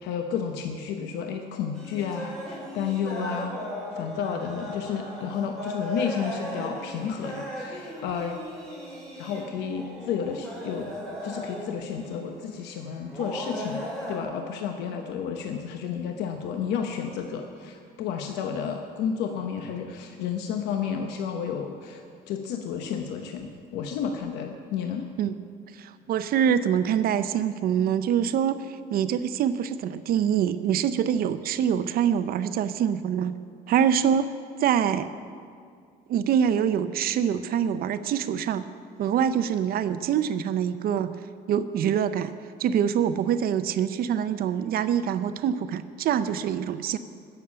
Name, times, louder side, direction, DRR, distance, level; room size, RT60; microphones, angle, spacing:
voice 1, 0.0-3.5 3.9-8.4 9.2-10.9 11.2-25.1, left 7 dB, 90° left, 4 dB, 0.9 m, -31 dB
sound 1, 1.7-12.3 13.1-14.2, equal, 5° left, 4.2 m, -37 dB
voice 2, 25.8-33.3 33.7-34.3 34.6-35.1 36.1-38.7 39.0-41.2 41.5-42.3 42.6-47.0, right 8 dB, 60° right, 12 dB, 0.6 m, -25 dB
13.5 x 7.0 x 8.5 m, 2.2 s
cardioid pair, 110°, 17 cm